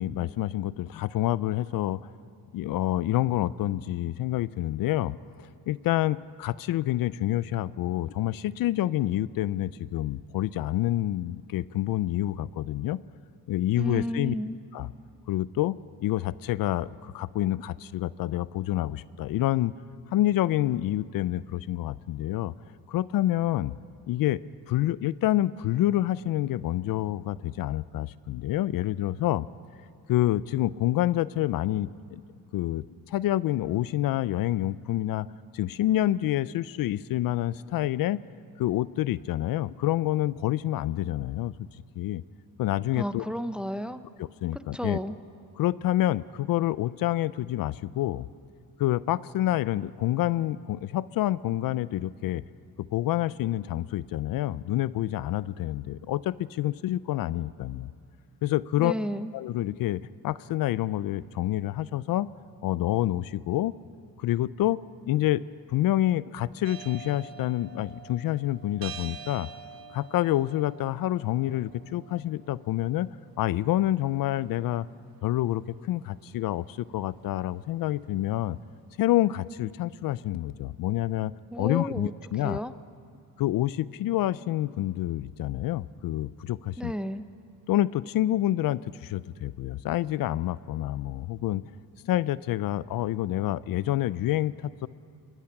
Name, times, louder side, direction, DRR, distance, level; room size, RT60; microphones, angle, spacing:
voice 1, 0.0-2.1 2.5-13.0 13.5-14.3 14.7-14.9 15.3-19.7 20.1-22.5 22.9-23.7 24.1-24.4 24.7-29.5 30.1-32.2 32.5-35.3 35.5-38.2 38.6-41.7 42.0-42.2 42.6-43.3 44.2-45.0 45.6-48.3 48.8-52.4 52.8-57.9 58.4-58.9 59.3-62.3 62.6-63.7 64.2-64.8 65.1-65.4 65.7-69.5 69.9-73.1 73.4-74.9 75.2-78.6 79.0-81.3 81.6-82.6 83.4-86.9 87.7-91.6 92.0-94.9, left 14 dB, 65° left, 18 dB, 0.5 m, -28 dB
voice 2, 13.8-14.6 43.0-44.0 44.5-45.2 58.8-59.3 81.5-82.1 82.4-82.7 86.8-87.3, equal, 5° right, 10 dB, 0.6 m, -32 dB
sound 1, 66.6-78.8, right 7 dB, 70° right, 1.1 m, -48 dB
25.5 x 21.0 x 5.9 m, 2.3 s
cardioid pair, 125°, 37 cm